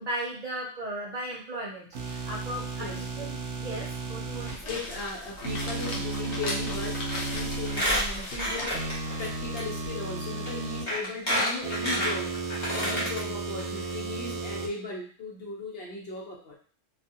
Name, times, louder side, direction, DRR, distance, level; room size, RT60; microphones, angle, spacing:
voice 1, 0.0-4.6, right 1 dB, 65° right, -4 dB, 0.4 m, -36 dB
sound 1, 1.9-4.5 5.4-7.8 8.7-10.8 11.6-14.7, right 3 dB, 85° right, 1.0 m, -34 dB
voice 2, 2.8-3.1 4.4-16.6, left 2 dB, 55° left, -3 dB, 0.8 m, -37 dB
sound 2, 4.2-9.9, left 1 dB, 75° left, 1.0 m, -38 dB
Squeak, 7.1-7.4 7.7-9.3 9.6-9.7 10.4-10.5 10.9-13.2 13.6-13.7 13.9-14.0, equal, 25° left, 1.0 m, -29 dB
2.5 x 2.3 x 2.7 m, 0.43 s
omnidirectional pair, 1.3 m